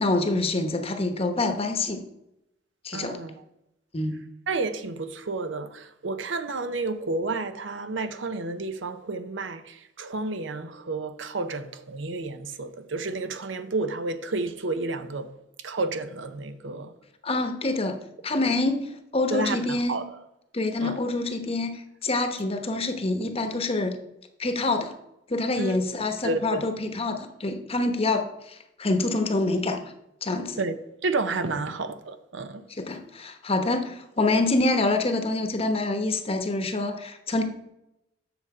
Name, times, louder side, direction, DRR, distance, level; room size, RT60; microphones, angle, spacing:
voice 1, 0.0-2.0 2.8-3.2 3.9-4.2 17.2-17.9 18.2-18.9 19.1-20.0 20.5-23.9 24.4-24.9 25.3-29.9 30.2-30.6 32.8-37.4, left 2 dB, 30° left, 1.0 m, -26 dB
voice 2, 2.9-3.4 4.5-15.3 15.6-16.9 18.4-18.5 19.3-20.2 20.8-21.0 25.6-25.8 26.2-26.7 30.5-30.8 31.0-32.6, right 3 dB, 75° right, 0.7 m, -31 dB
8.0 x 6.6 x 4.8 m
head